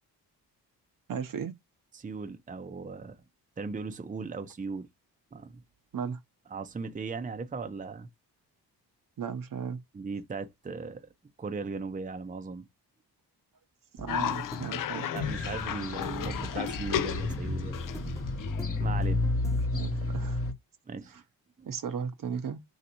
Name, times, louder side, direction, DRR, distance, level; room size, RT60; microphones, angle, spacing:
voice 1, 1.1-1.5 5.9-6.2 9.2-9.8 13.9-15.3 19.6-20.4 21.1-21.2 21.7-22.6, right 7 dB, 55° right, 0.8 m, -36 dB
voice 2, 1.9-3.2 3.6-4.9 5.3-5.6 6.5-8.1 9.9-11.1 11.4-12.7 15.0-17.9 18.8-19.2 20.9-21.1 21.6-21.7, right 4 dB, 20° right, 0.6 m, -38 dB
sound 1, 14.0-19.7, equal, 5° left, 0.9 m, -43 dB
Cough, 14.1-19.1, left 10 dB, 55° left, 0.5 m, -34 dB
sound 2, 15.2-20.5, left 2 dB, 35° left, 1.0 m, -32 dB
3.2 x 2.7 x 2.8 m
cardioid pair, 70°, 39 cm